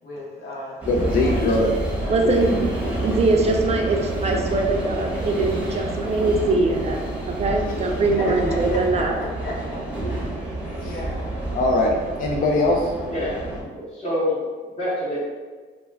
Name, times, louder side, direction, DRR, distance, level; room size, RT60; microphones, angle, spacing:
voice 1, 0.0-0.8 1.2-1.6 2.0-2.3 8.2-9.0 9.4-10.2 10.8-11.3, left 1 dB, 70° left, -4 dB, 0.9 m, -34 dB
sound 1, 0.8-13.6, right 1 dB, 5° right, 0.8 m, -28 dB
voice 2, 0.9-1.7 2.2-2.4 10.7-10.9 11.5-12.9, left 2 dB, 45° left, 0 dB, 0.4 m, -21 dB
voice 3, 2.1-2.6 3.0-7.0 7.3-9.1, right 3 dB, 35° right, 2 dB, 0.4 m, -22 dB
voice 4, 13.1-14.3 14.8-15.2, left 1 dB, 30° left, -9 dB, 0.8 m, -26 dB
2.2 x 2.2 x 3.2 m, 1.4 s
cardioid pair, 90°, 20 cm